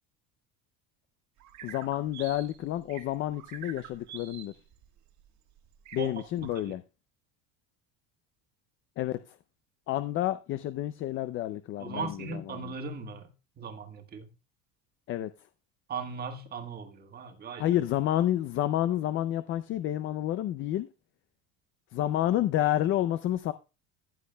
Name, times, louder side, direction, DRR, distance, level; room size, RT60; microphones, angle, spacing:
sound 1, 1.4-6.6, right 10 dB, 50° right, 1.5 m, -48 dB
voice 1, 1.6-4.6 5.9-6.8 9.0-9.2 9.9-12.2 12.5-12.7 15.1-15.3 17.6-20.9 21.9-23.5, left 13 dB, 35° left, 0.4 m, -29 dB
voice 2, 11.8-14.3 15.9-17.7, right 5 dB, 25° right, 1.4 m, -38 dB
15.0 x 8.4 x 2.2 m
cardioid pair, 155°, 36 cm